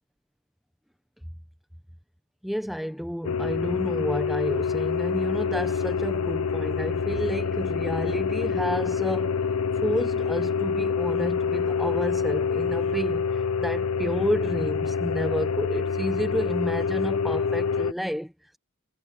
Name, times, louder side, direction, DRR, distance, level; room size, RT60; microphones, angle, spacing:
voice 1, 2.4-9.4 9.8-13.3 13.6-18.6, equal, ahead, 0.9 m, -30 dB
sound 1, 3.2-17.9, left 6 dB, 75° left, 0.9 m, -26 dB
head